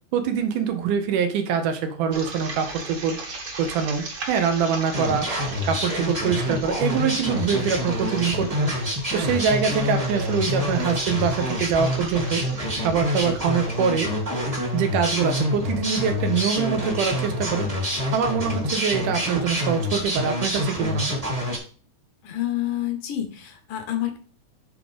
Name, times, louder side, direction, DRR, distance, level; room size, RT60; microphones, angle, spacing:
voice 1, 0.1-3.2 3.6-5.3 5.7-8.7 9.1-12.4 12.8-14.1 14.7-17.7 18.1-21.1, right 7 dB, 75° right, 6 dB, 2.5 m, -24 dB
sound 1, 2.1-15.0, right 3 dB, 45° right, 1.5 m, -39 dB
sound 2, 4.9-21.6, left 1 dB, 20° right, 1.0 m, -27 dB
voice 2, 22.2-24.2, left 13 dB, 75° left, 6 dB, 2.7 m, -28 dB
8.2 x 3.8 x 5.1 m, 0.41 s
omnidirectional pair, 3.8 m